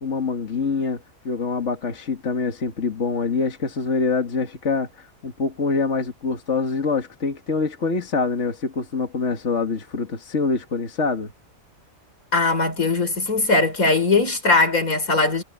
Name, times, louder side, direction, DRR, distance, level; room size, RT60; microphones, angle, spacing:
voice 1, 0.0-11.3, left 4 dB, 60° left, 2.1 m, -25 dB
voice 2, 12.3-15.4, left 3 dB, 85° left, 4.8 m, -20 dB
omnidirectional pair, 1.4 m